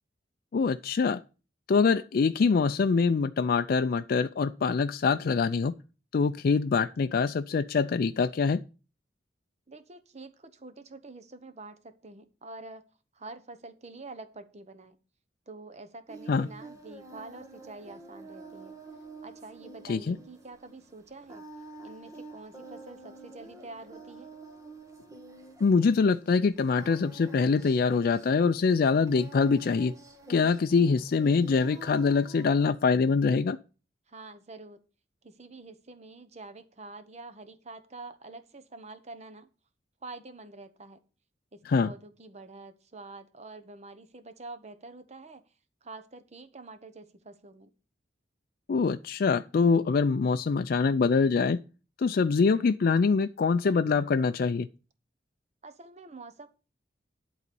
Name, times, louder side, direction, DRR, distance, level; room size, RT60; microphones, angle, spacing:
voice 1, 0.5-1.2 1.7-5.7 6.1-8.6 16.3-16.5 19.9-20.2 25.6-29.9 30.3-33.6 41.7-41.9 48.7-51.6 52.0-54.7, left 5 dB, 55° left, 0.4 m, -24 dB
voice 2, 9.7-12.8 13.1-15.0 15.5-18.8 19.2-21.4 21.8-24.4 34.1-34.8 35.2-39.5 40.0-41.0 41.5-45.4 45.8-47.7 55.6-56.5, right 3 dB, 40° right, 1.0 m, -47 dB
Singing, 16.1-32.7, right 2 dB, 20° right, 1.4 m, -48 dB
11.0 x 4.0 x 6.9 m
head